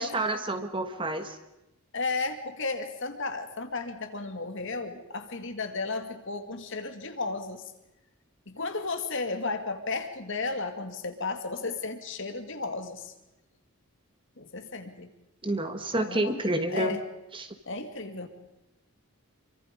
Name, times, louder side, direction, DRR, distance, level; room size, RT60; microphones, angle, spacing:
voice 1, 0.0-1.4 15.4-17.0 17.3-17.5, right 1 dB, 25° right, 8 dB, 1.5 m, -29 dB
voice 2, 1.9-7.6 8.5-13.1 14.4-15.1 15.9-16.3 16.7-17.0 17.7-18.3, left 3 dB, 55° left, 6 dB, 2.3 m, -34 dB
27.0 x 24.5 x 5.3 m, 0.94 s
head